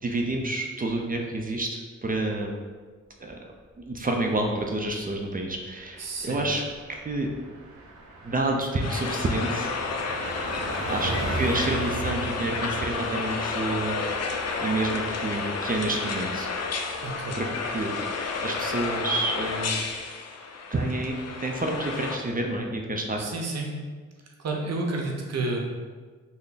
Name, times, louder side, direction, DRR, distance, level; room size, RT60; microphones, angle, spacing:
voice 1, 0.0-2.5 3.2-3.4 3.8-6.6 6.9-7.3 8.2-9.8 10.9-16.5 16.9-17.1 17.3-17.9 18.4-19.9 20.7-23.2, right 2 dB, 30° right, 1 dB, 0.5 m, -29 dB
Car passing by, 4.8-5.0 5.3-5.5 5.8-20.0, right 3 dB, 90° right, 0.7 m, -39 dB
voice 2, 6.0-6.4 10.9-11.2 17.0-17.4 23.2-23.7 24.4-25.6, right 2 dB, 55° right, 0 dB, 0.7 m, -31 dB
sound 1, 8.8-22.2, left 4 dB, 55° left, 0.5 m, -31 dB
3.3 x 2.1 x 3.9 m, 1.5 s
cardioid pair, 65°, 30 cm